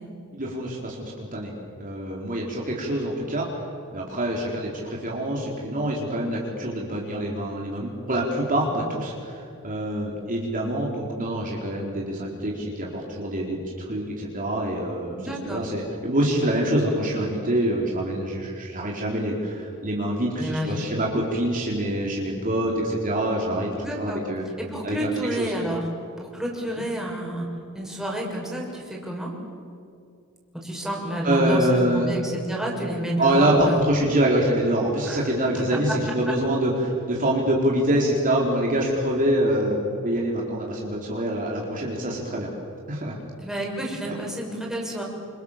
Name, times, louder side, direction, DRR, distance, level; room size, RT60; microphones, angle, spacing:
voice 1, 0.4-1.5 1.8-3.7 3.9-24.5 24.8-25.5 31.2-32.1 33.2-42.5 42.9-43.2 44.1-44.2, right 1 dB, 40° right, -2 dB, 4.2 m, -25 dB
voice 2, 15.2-15.6 20.4-20.9 23.8-24.2 24.6-25.8 26.2-27.5 27.7-29.3 30.5-31.7 31.9-33.8 35.0-35.5 43.4-45.0, right 1 dB, ahead, -2 dB, 6.7 m, -29 dB
28.5 x 27.5 x 7.5 m, 2.5 s
head